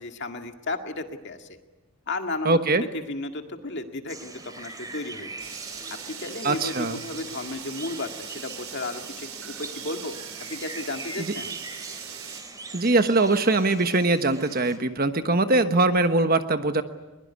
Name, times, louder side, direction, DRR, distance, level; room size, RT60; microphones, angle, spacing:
voice 1, 0.0-1.6 2.1-2.6 2.9-5.5 6.1-10.1 10.5-11.5, left 2 dB, 50° left, 5 dB, 2.1 m, -34 dB
voice 2, 2.4-2.8 6.4-7.0 11.2-11.3 12.7-16.8, right 2 dB, 40° right, 9 dB, 1.3 m, -22 dB
sound 1, 4.1-14.8, right 3 dB, 15° right, 2.6 m, -41 dB
sound 2, 5.4-12.4, right 8 dB, 65° right, 3.7 m, -40 dB
22.0 x 22.0 x 9.8 m, 1.1 s
head